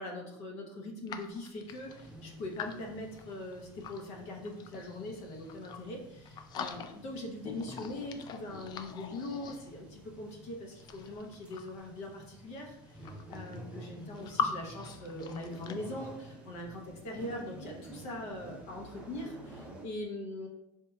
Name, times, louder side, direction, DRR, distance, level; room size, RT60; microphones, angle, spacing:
voice 1, 0.0-20.5, left 1 dB, 55° left, 0 dB, 0.8 m, -42 dB
sound 1, 1.1-4.0 4.4-5.9 6.2-7.2 7.4-10.0 10.7-11.9 12.6-12.7 12.9-14.5 14.8-15.8, left 7 dB, 35° left, 0.3 m, -42 dB
sound 2, 1.7-19.9, right 1 dB, 10° right, 0.6 m, -51 dB
4.3 x 2.7 x 2.3 m, 0.89 s
supercardioid pair, 125°, 12 cm